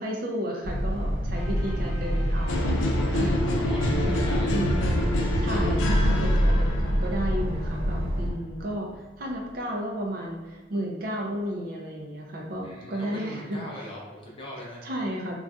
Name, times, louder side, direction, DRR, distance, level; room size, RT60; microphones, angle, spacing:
voice 1, 0.0-4.2 4.5-4.9 5.4-13.6 14.8-15.4, equal, 50° right, -1 dB, 0.5 m, -33 dB
sound 1, 0.6-8.3, equal, 85° right, 0.7 m, -27 dB
sound 2, 1.3-4.0, equal, 45° left, 1.2 m, -41 dB
sound 3, 2.5-8.4, left 1 dB, 85° left, 0.4 m, -26 dB
voice 2, 3.2-4.9 12.6-14.8, left 1 dB, 25° left, -4 dB, 0.6 m, -40 dB
3.8 x 2.3 x 2.3 m, 1.2 s
head